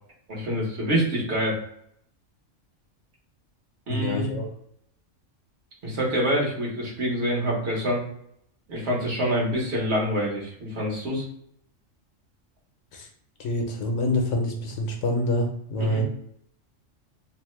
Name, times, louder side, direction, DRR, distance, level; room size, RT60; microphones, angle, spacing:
voice 1, 0.3-1.6 3.9-4.4 5.8-8.0 8.7-11.2 15.8-16.0, equal, 55° right, -3 dB, 1.2 m, -26 dB
voice 2, 3.9-4.5 12.9-13.1 13.4-16.0, left 1 dB, 75° left, 2 dB, 1.0 m, -26 dB
2.8 x 2.1 x 3.0 m, 0.70 s
omnidirectional pair, 1.3 m